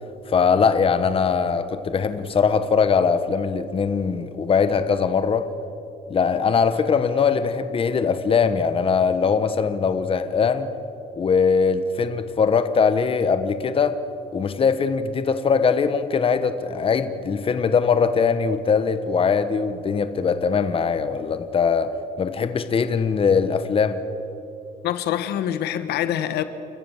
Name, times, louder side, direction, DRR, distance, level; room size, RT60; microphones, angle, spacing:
voice 1, 0.3-5.5 6.1-10.7 11.1-14.0 14.3-21.9 22.2-24.0, left 5 dB, 35° left, 1.2 m, -21 dB
voice 2, 24.8-26.4, left 11 dB, 75° left, 1.3 m, -25 dB
29.5 x 14.0 x 7.2 m
cardioid pair, 110°, 17 cm